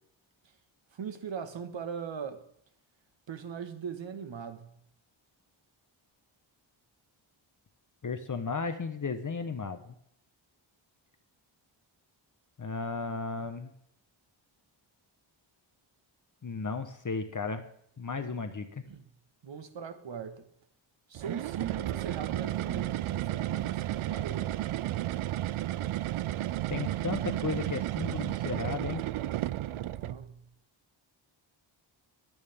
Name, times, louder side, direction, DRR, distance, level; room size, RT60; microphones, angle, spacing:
voice 1, 0.9-2.4 3.3-4.7 13.1-13.5 18.9-19.0 19.4-20.4 21.1-24.6 29.7-30.5, right 7 dB, 65° right, 1.7 m, -40 dB
voice 2, 8.0-9.9 12.6-13.7 16.4-17.6 18.0-18.8 26.7-29.0, left 4 dB, 40° left, 1.2 m, -34 dB
sound 1, 21.1-30.3, right 14 dB, 85° right, 0.6 m, -33 dB
23.0 x 9.0 x 3.7 m
wide cardioid pair, 105°, 48 cm